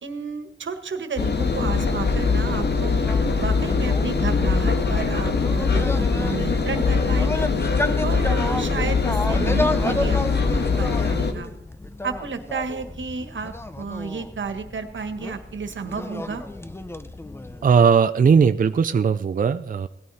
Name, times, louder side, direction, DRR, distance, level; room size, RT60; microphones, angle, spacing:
voice 1, 0.0-3.0 3.4-7.5 8.0-11.5 12.0-16.4, right 5 dB, 90° right, 9 dB, 1.6 m, -32 dB
Engine, 1.2-11.3, left 4 dB, 60° left, 1.5 m, -22 dB
sound 1, 3.0-17.7, left 2 dB, 15° left, 0.7 m, -32 dB
voice 2, 17.6-19.9, right 6 dB, 45° right, 10 dB, 0.5 m, -18 dB
17.5 x 13.0 x 4.3 m, 0.78 s
wide cardioid pair, 125°, 19 cm